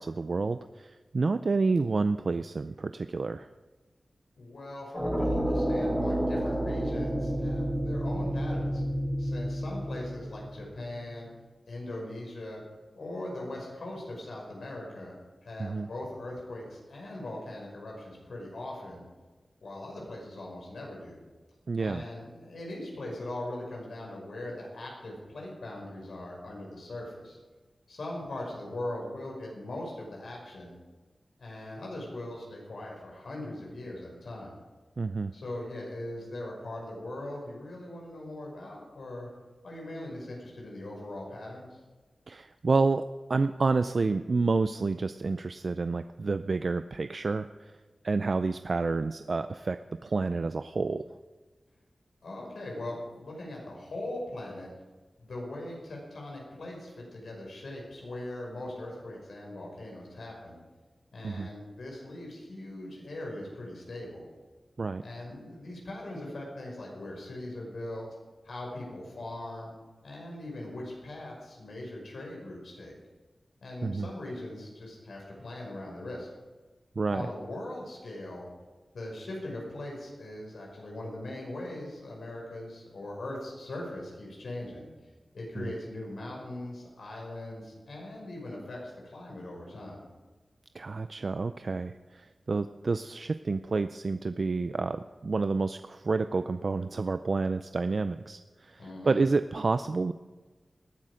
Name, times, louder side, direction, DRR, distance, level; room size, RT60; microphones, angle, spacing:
voice 1, 0.0-3.5 15.6-15.9 21.7-22.0 35.0-35.3 42.3-43.0 43.3-47.7 48.0-51.0 61.2-61.5 64.8-65.0 73.8-74.1 77.0-77.3 85.6-85.7 90.7-100.1, right 3 dB, 55° right, 10 dB, 0.5 m, -29 dB
voice 2, 4.4-8.8 9.2-11.3 11.7-12.6 12.9-15.1 15.4-19.0 19.6-21.2 21.8-27.4 27.9-30.7 31.4-34.5 35.3-39.3 39.6-41.8 52.2-54.7 55.2-60.6 61.1-64.3 65.0-68.1 68.4-69.7 70.0-73.0 73.6-76.3 77.1-78.5 78.9-84.8 85.3-90.0 98.8-99.2, left 1 dB, 85° left, -1 dB, 5.8 m, -40 dB
sound 1, 4.9-10.8, right 1 dB, ahead, 3.7 m, -30 dB
19.5 x 12.0 x 5.1 m, 1.3 s
wide cardioid pair, 100°, 0 cm